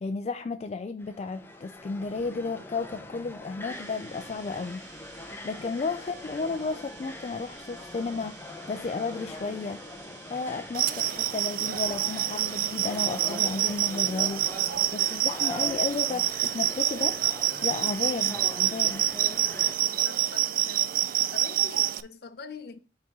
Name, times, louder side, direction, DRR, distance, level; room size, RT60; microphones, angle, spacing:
voice 1, 0.0-4.8 5.4-8.4 8.7-9.8 10.3-14.5 14.9-17.2 17.6-19.1, left 4 dB, 35° left, 0.3 m, -33 dB
sound 1, 1.0-19.8, left 1 dB, 15° left, 0.7 m, -43 dB
sound 2, 3.7-14.3, right 4 dB, 75° right, 1.3 m, -50 dB
sound 3, 10.7-22.0, right 13 dB, 50° right, 0.4 m, -27 dB
voice 2, 19.8-20.9 21.3-22.8, left 4 dB, 60° left, 0.8 m, -44 dB
5.6 x 3.6 x 5.3 m
head